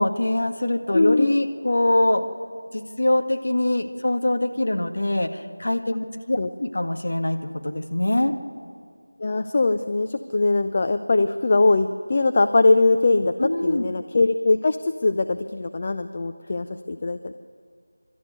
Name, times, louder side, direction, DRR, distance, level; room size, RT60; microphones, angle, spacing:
voice 1, 0.0-2.2 2.7-7.4 7.6-8.3 13.4-13.9, left 1 dB, 55° left, 4 dB, 1.8 m, -23 dB
voice 2, 0.9-1.4 6.4-6.5 9.2-17.3, left 3 dB, 30° left, 8 dB, 0.6 m, -21 dB
27.5 x 13.0 x 9.4 m, 2.1 s
figure-of-eight pair, 170°, 0 cm